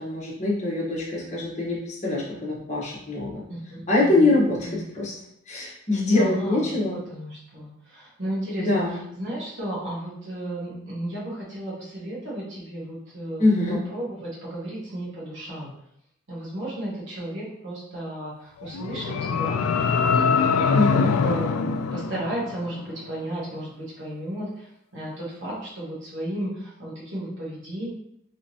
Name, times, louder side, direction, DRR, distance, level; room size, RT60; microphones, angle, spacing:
voice 1, 0.0-3.4 3.9-5.1 5.5-7.0 8.6-9.0 13.4-13.8 20.7-21.1, left 2 dB, 35° left, -5 dB, 1.0 m, -23 dB
voice 2, 3.5-4.3 4.6-4.8 6.1-13.4 13.7-15.7 16.3-19.6 20.1-27.9, right 1 dB, 60° right, -8 dB, 1.3 m, -34 dB
sound 1, 18.6-22.8, left 5 dB, 90° left, 0.3 m, -23 dB
3.4 x 2.9 x 2.7 m, 0.74 s
head